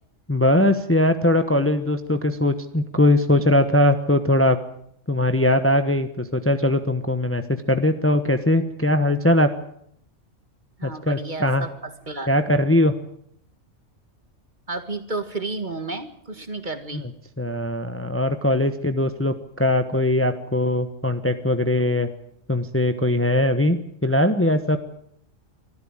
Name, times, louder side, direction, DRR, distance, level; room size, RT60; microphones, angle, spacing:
voice 1, 0.3-4.6 5.1-9.5 10.8-11.7 12.3-12.9 16.9-17.0 17.4-22.1 22.5-24.8, left 1 dB, 10° left, 8 dB, 1.1 m, -20 dB
voice 2, 10.8-12.3 14.7-17.0, right 3 dB, 35° right, 9 dB, 1.9 m, -32 dB
24.5 x 14.0 x 8.9 m, 0.69 s
omnidirectional pair, 1.3 m